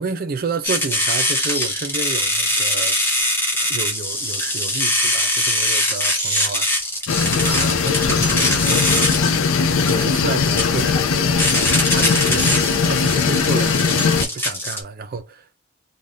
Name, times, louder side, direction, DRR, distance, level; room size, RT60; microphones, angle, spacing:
voice 1, 0.0-3.0 3.5-6.7 7.4-9.0 9.9-11.5 11.9-12.4 12.8-15.5, right 4 dB, 45° right, 0.4 m, -30 dB
sound 1, 0.6-14.8, left 1 dB, 10° left, 0.7 m, -22 dB
sound 2, 7.1-14.2, left 5 dB, 80° left, 0.5 m, -19 dB
3.4 x 2.3 x 2.6 m
head